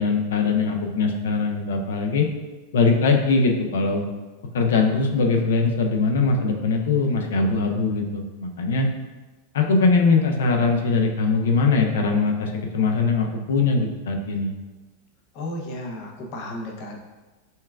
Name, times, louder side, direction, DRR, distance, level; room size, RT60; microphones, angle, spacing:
voice 1, 0.0-2.3 2.7-4.0 4.5-8.9 9.5-14.5, left 4 dB, 90° left, 3 dB, 0.5 m, -21 dB
voice 2, 15.3-17.0, left 1 dB, 50° left, 1 dB, 0.7 m, -33 dB
5.4 x 2.3 x 2.3 m, 1.2 s
supercardioid pair, 145°, 0 cm